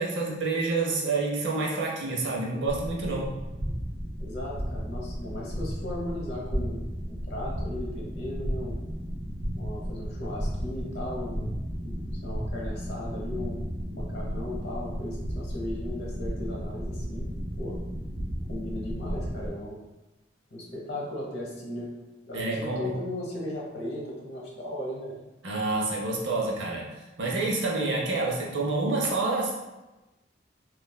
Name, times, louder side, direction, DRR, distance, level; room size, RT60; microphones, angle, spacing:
voice 1, 0.0-3.3 22.3-23.0 25.4-26.9 27.2-29.5, right 3 dB, 80° right, -2 dB, 0.7 m, -28 dB
sound 1, 2.7-19.5, equal, 50° right, 1.2 m, -34 dB
voice 2, 4.2-8.8 9.5-13.6 13.9-17.3 17.6-17.8 18.5-19.8 20.5-21.9 22.3-25.2, left 1 dB, 65° left, -3 dB, 0.9 m, -37 dB
3.2 x 2.4 x 2.2 m, 1.1 s
head